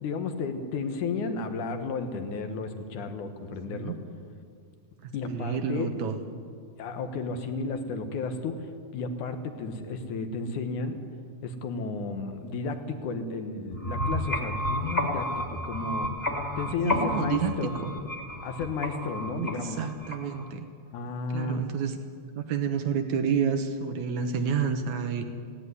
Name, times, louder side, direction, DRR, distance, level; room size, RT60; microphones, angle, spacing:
voice 1, 0.0-4.0 5.1-5.9 6.8-11.0 11.4-16.1 16.6-17.7 18.4-19.8 20.9-21.7, left 4 dB, 60° left, 8 dB, 2.4 m, -33 dB
voice 2, 3.5-4.0 5.0-6.2 16.8-17.9 19.4-20.7 21.3-22.0 22.4-25.2, right 7 dB, 70° right, 7 dB, 1.9 m, -30 dB
sound 1, 13.7-20.5, left 1 dB, 15° left, 2.6 m, -31 dB
18.0 x 17.0 x 9.8 m, 2.2 s
omnidirectional pair, 4.5 m